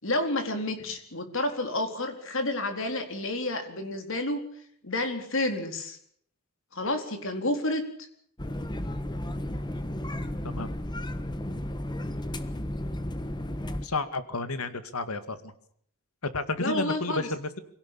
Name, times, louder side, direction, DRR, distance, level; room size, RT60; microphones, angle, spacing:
voice 1, 0.0-4.4 4.8-6.0 6.7-7.8 16.6-17.3, left 1 dB, 60° left, 7 dB, 4.2 m, -30 dB
sound 1, 8.4-13.9, left 1 dB, 20° left, 1.4 m, -33 dB
voice 2, 13.8-15.5 16.3-17.6, left 3 dB, 80° left, 11 dB, 2.2 m, -32 dB
24.5 x 17.5 x 8.6 m, 0.65 s
head